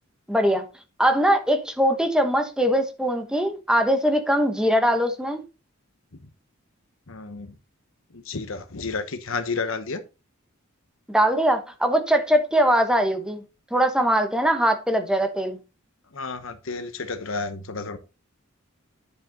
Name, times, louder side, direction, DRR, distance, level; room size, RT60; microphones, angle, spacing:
voice 1, 0.3-0.6 1.0-5.4 11.1-13.4 13.7-15.6, equal, 5° right, 1.0 m, -21 dB
voice 2, 7.1-7.6 8.1-10.0 16.1-18.0, left 4 dB, 70° left, 1.0 m, -31 dB
10.5 x 5.1 x 3.9 m
head